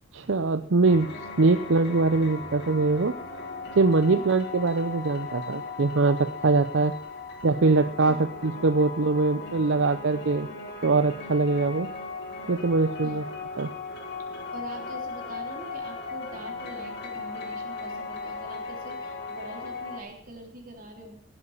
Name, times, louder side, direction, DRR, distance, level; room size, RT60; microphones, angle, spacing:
voice 1, 0.1-1.1 1.4-3.2 3.8-6.9 7.4-10.5 10.8-11.9 12.5-13.2 13.6-13.7, right 3 dB, 70° right, 10 dB, 0.7 m, -23 dB
sound 1, 0.8-20.0, left 4 dB, 55° left, 3.0 m, -37 dB
voice 2, 14.5-21.1, right 1 dB, 45° right, 2 dB, 3.6 m, -43 dB
16.5 x 8.2 x 7.3 m, 0.63 s
head